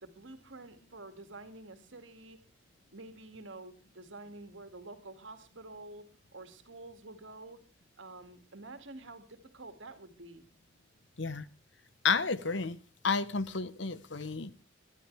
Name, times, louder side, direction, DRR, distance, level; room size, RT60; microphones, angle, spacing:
voice 1, 0.0-2.4 2.9-6.0 6.3-7.6 8.0-10.5, right 2 dB, 85° right, 7 dB, 2.3 m, -48 dB
voice 2, 12.0-12.8 13.0-14.5, left 5 dB, 70° left, 15 dB, 1.0 m, -31 dB
22.0 x 12.0 x 3.4 m, 0.32 s
head